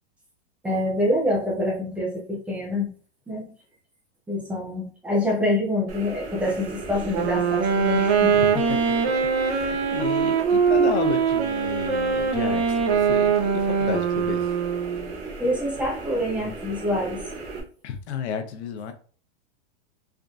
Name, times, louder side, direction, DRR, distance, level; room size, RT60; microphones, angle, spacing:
voice 1, 0.6-2.9 3.3-3.5 4.3-8.4 15.4-17.3 17.5-17.6, left 1 dB, 5° right, 0.4 m, -26 dB
sound 1, 5.9-17.6, right 3 dB, 35° right, 0.7 m, -37 dB
Wind instrument woodwind instrument, 7.0-15.1, right 6 dB, 65° right, 0.8 m, -22 dB
voice 2, 8.3-8.9 9.4-14.6 17.8-18.9, left 7 dB, 75° left, 0.7 m, -32 dB
3.5 x 2.5 x 2.4 m
supercardioid pair, 155°, 34 cm